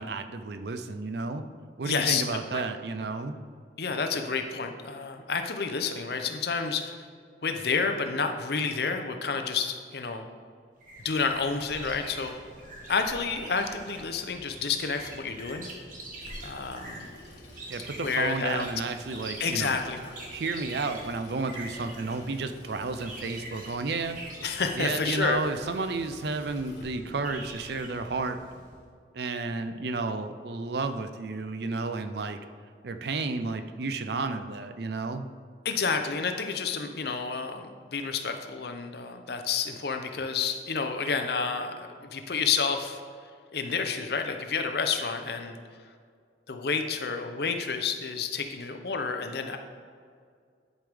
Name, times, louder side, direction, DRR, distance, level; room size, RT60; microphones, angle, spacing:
voice 1, 0.0-1.4 1.8-3.3 17.7-19.8 20.3-24.2 24.8-28.4 29.1-32.4 32.8-35.3, right 3 dB, 60° right, 9 dB, 0.5 m, -32 dB
voice 2, 1.8-2.2 2.5-2.6 3.8-7.1 7.4-10.2 11.0-12.3 12.9-15.7 16.4-17.1 18.0-18.7 19.4-20.0 24.4-25.4 35.6-43.0 43.5-45.6 46.5-49.6, left 5 dB, 60° left, 6 dB, 0.6 m, -30 dB
sound 1, 10.8-28.8, right 2 dB, 45° right, 1.3 m, -45 dB
Water tap faucet / Sink (filling or washing), 16.2-26.8, left 2 dB, 75° left, 1.3 m, -51 dB
11.0 x 5.1 x 3.5 m, 2.1 s
head